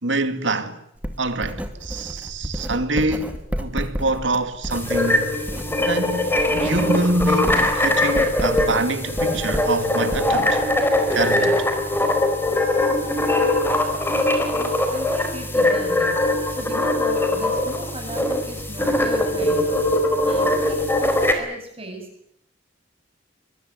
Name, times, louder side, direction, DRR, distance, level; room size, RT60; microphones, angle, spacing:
voice 1, 0.0-0.8 1.2-5.4 5.8-10.6 11.1-11.6, right 2 dB, 70° right, 2.5 m, -25 dB
Writing, 1.0-5.9 6.2-10.9, equal, 10° right, 2.5 m, -31 dB
sound 1, 4.7-21.3, left 1 dB, 10° left, 4.4 m, -21 dB
voice 2, 14.4-16.1 16.5-19.8 20.2-22.1, right 1 dB, 30° right, 7.5 m, -36 dB
25.0 x 22.5 x 9.4 m
head